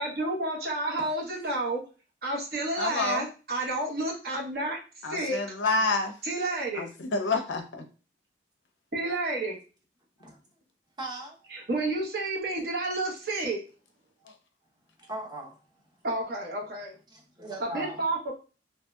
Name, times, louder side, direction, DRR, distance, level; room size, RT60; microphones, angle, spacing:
voice 1, 0.0-1.8 2.2-4.8 5.1-5.4 6.2-6.9 8.9-9.6 11.5-13.6 16.0-16.9 17.6-18.3, right 2 dB, 55° right, -2 dB, 0.9 m, -30 dB
voice 2, 2.8-3.2 5.0-6.1 6.7-7.8, left 3 dB, 85° left, 5 dB, 0.6 m, -28 dB
voice 3, 11.0-11.7 13.3-13.4 15.0-15.6 17.1-18.0, right 1 dB, 25° right, -2 dB, 0.8 m, -40 dB
3.1 x 2.7 x 2.2 m, 0.34 s
head